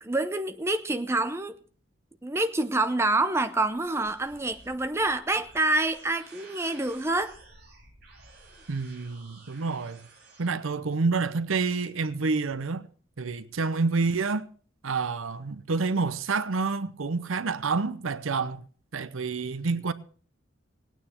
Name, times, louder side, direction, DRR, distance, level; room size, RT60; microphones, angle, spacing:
voice 1, 0.0-1.5 2.2-7.3, right 2 dB, 15° right, 0.6 m, -27 dB
sound 1, 3.2-10.6, right 3 dB, 50° right, 3.7 m, -53 dB
voice 2, 8.7-10.1 10.4-12.8 13.2-14.5 14.8-18.6 18.9-19.9, right 4 dB, 85° right, 0.7 m, -28 dB
18.0 x 9.2 x 4.4 m
head